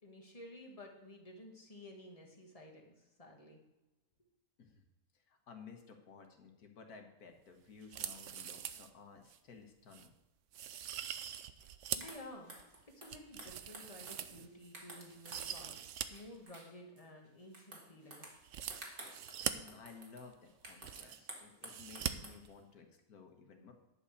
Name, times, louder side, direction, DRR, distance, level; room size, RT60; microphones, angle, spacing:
voice 1, 0.0-3.6 11.9-12.5 12.9-18.3, left 1 dB, 25° left, 1 dB, 1.7 m, -53 dB
voice 2, 5.3-10.1 19.5-23.7, left 5 dB, 85° left, 4 dB, 1.8 m, -56 dB
sound 1, 7.8-8.9 9.3-9.4 9.9-10.1 10.5-12.2 12.6-14.7 15.1-16.1 16.3-16.4 18.4-19.5 20.3-20.4 20.6-21.3 21.7-22.1 22.4-22.5, right 10 dB, 65° right, 0.9 m, -42 dB
sound 2, 11.6-11.7 12.0-15.5 15.9-17.0 17.5-22.4, right 2 dB, 35° right, 1.7 m, -53 dB
10.5 x 5.6 x 6.5 m, 1.0 s
omnidirectional pair, 1.6 m